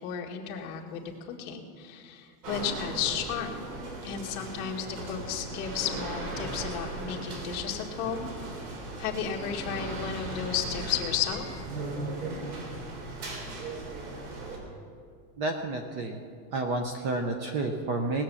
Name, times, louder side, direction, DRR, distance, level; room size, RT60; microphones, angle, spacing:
voice 1, 0.0-1.0 1.4-3.6 4.0-8.3 9.0-11.6, left 8 dB, 45° left, -1 dB, 1.8 m, -33 dB
sound 1, 2.4-14.6, right 2 dB, 85° right, 3.6 m, -37 dB
voice 2, 15.4-16.2 16.5-18.2, right 2 dB, 25° right, 5 dB, 0.5 m, -30 dB
19.0 x 7.3 x 7.0 m, 2.2 s
supercardioid pair, 175°, 44 cm